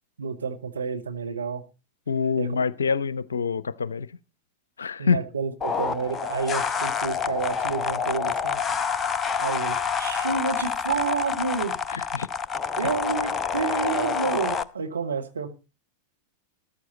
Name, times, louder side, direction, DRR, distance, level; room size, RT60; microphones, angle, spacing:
voice 1, 0.2-1.6 2.4-2.5 5.0-8.6 9.4-11.8 12.8-15.5, right 5 dB, 70° right, 1.7 m, -29 dB
voice 2, 2.1-4.1 4.8-5.2 11.9-12.3, left 5 dB, 70° left, 0.6 m, -26 dB
sound 1, 5.6-14.6, left 6 dB, 20° left, 0.7 m, -27 dB
14.0 x 12.5 x 4.2 m
figure-of-eight pair, 90°, 0 cm